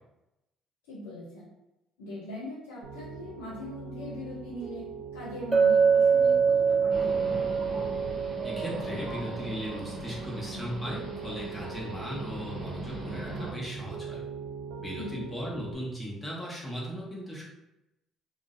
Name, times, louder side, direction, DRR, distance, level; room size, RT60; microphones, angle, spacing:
voice 1, 0.9-1.5 2.0-4.8 5.1-7.6 15.0-15.2, left 1 dB, 90° left, -5 dB, 0.5 m, -41 dB
Piano, 2.8-15.7, right 5 dB, 75° right, 0.3 m, -42 dB
Chink clink, 5.5-9.5, right 6 dB, 15° right, 0.5 m, -24 dB
sound 1, 6.9-13.5, right 1 dB, 45° right, 0.9 m, -39 dB
voice 2, 8.4-14.2 14.8-17.4, equal, 15° left, -5 dB, 1.0 m, -37 dB
2.5 x 2.0 x 2.4 m, 0.92 s
hypercardioid pair, 65°, 0 cm